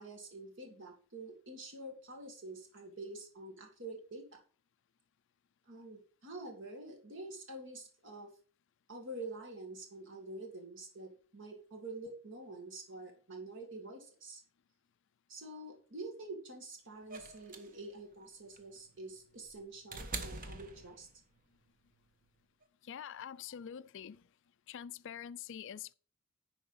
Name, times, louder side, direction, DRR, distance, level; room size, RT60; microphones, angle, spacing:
voice 1, 0.0-4.4 5.7-8.3 8.9-14.4 15.3-21.1, right 2 dB, 60° right, 2.0 m, -47 dB
sound 1, 17.1-21.4 22.6-22.7, right 3 dB, 40° right, 1.2 m, -45 dB
voice 2, 22.8-24.3 24.7-25.9, left 8 dB, 60° left, 0.4 m, -45 dB
11.0 x 4.7 x 5.5 m
head